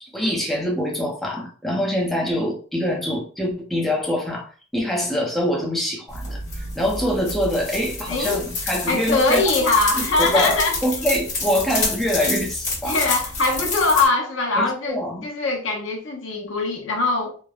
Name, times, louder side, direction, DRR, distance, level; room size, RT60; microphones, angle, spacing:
voice 1, 0.0-9.5 10.0-13.0 14.6-15.3, equal, ahead, 0.6 m, -24 dB
sound 1, 6.1-14.1, left 3 dB, 40° left, 1.3 m, -28 dB
voice 2, 8.1-8.4 8.9-10.8 12.8-17.4, left 3 dB, 85° left, 0.7 m, -22 dB
3.1 x 2.1 x 2.3 m
head